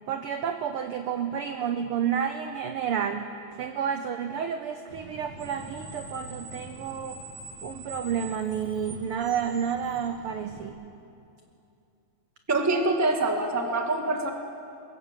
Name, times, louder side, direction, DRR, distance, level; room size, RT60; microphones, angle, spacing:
voice 1, 0.1-3.3 3.6-7.2 7.6-10.9, right 8 dB, 75° right, 8 dB, 1.3 m, -30 dB
Screech, 4.9-10.7, right 2 dB, 35° right, 2.7 m, -44 dB
voice 2, 12.5-14.3, right 2 dB, 10° right, 3 dB, 0.9 m, -25 dB
22.0 x 17.5 x 7.5 m, 2.6 s
omnidirectional pair, 3.4 m